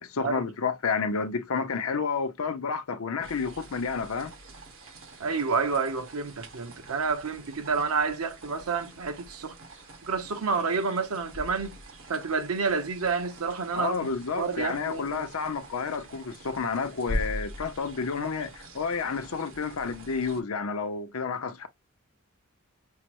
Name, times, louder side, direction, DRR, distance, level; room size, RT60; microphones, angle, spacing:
voice 1, 0.0-4.3 13.7-21.7, left 5 dB, 75° left, 0.6 m, -30 dB
sound 1, 3.2-20.4, equal, 60° right, 1.3 m, -43 dB
voice 2, 5.2-9.5 10.1-11.8 12.1-14.0 14.4-15.2, right 4 dB, 90° right, 0.9 m, -29 dB
5.6 x 2.1 x 2.9 m
head